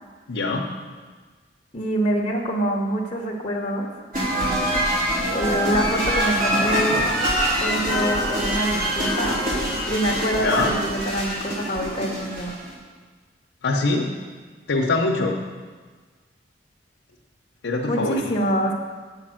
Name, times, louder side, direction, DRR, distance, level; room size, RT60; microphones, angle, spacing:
voice 1, 0.3-0.7 10.4-10.7 13.6-14.1 14.7-15.4 17.6-18.2, left 3 dB, 80° left, -1 dB, 0.8 m, -22 dB
voice 2, 1.7-3.9 5.3-7.0 7.5-9.4 9.9-12.6 17.8-18.7, right 1 dB, 30° left, -2 dB, 0.9 m, -25 dB
sound 1, 4.1-12.7, equal, 45° right, 3.0 m, -24 dB
8.1 x 5.4 x 7.5 m, 1.5 s
head